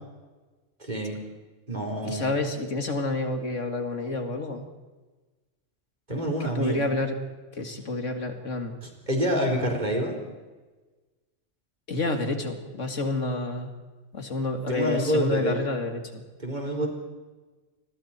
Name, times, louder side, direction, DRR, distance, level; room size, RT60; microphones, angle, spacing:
voice 1, 0.8-1.2 1.7-2.2 6.1-6.9 9.1-10.1 14.7-15.5 16.4-16.9, equal, 35° right, 1 dB, 4.6 m, -27 dB
voice 2, 2.0-4.6 6.4-7.2 7.5-8.7 11.9-13.7 14.1-16.2, left 2 dB, 75° left, 5 dB, 2.7 m, -29 dB
28.5 x 22.0 x 4.5 m, 1.2 s
omnidirectional pair, 1.3 m